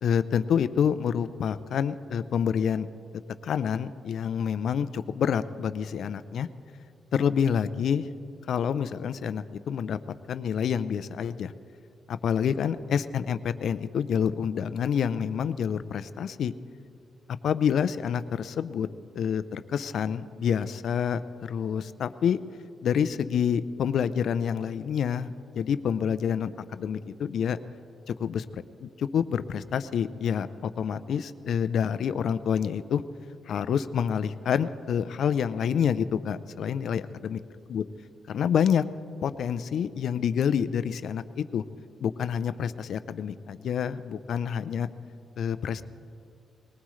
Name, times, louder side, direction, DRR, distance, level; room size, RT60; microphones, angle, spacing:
voice 1, 0.0-2.9 3.4-6.5 7.1-8.1 8.5-10.0 10.3-11.5 12.1-16.5 17.4-18.9 19.1-22.4 22.8-27.6 28.1-33.0 33.5-37.4 37.7-37.8 38.3-38.9 39.2-41.6 42.0-44.9 45.4-45.8, left 8 dB, 70° left, 13 dB, 0.5 m, -28 dB
20.5 x 19.0 x 3.2 m, 2.5 s
cardioid pair, 85°, 0 cm